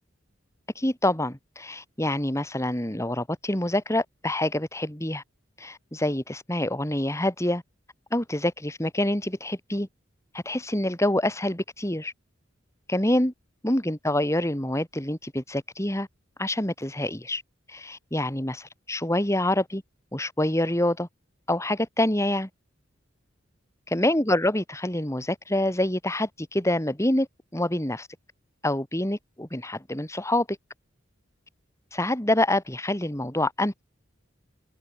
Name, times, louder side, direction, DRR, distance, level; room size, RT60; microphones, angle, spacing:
voice 1, 0.7-5.2 5.6-7.6 8.1-9.9 10.3-12.1 12.9-13.3 13.6-16.1 16.4-17.4 17.7-19.8 20.1-21.1 21.5-22.5 23.9-27.3 27.5-28.1 28.6-30.5 31.9-33.8, left 1 dB, 15° left, 2.8 m, -26 dB
head